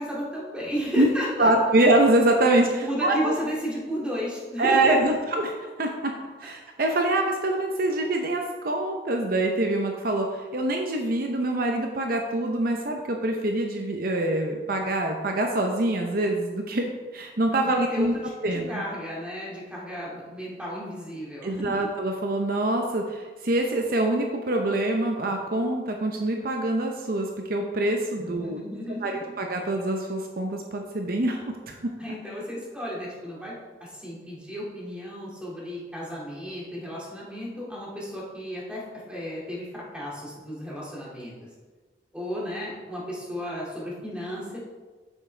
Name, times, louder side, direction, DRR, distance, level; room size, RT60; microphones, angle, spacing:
voice 1, 0.0-1.5 2.8-5.2 17.5-18.1 18.4-21.9 28.2-29.3 32.0-33.5 33.8-41.3 42.1-44.6, equal, 5° right, -5 dB, 2.2 m, -33 dB
voice 2, 1.4-3.3 4.6-5.5 5.8-6.1 6.4-18.1 18.4-18.8 21.4-28.6 29.0-31.8, right 1 dB, 55° right, 3 dB, 0.7 m, -25 dB
8.5 x 7.3 x 3.3 m, 1.3 s
head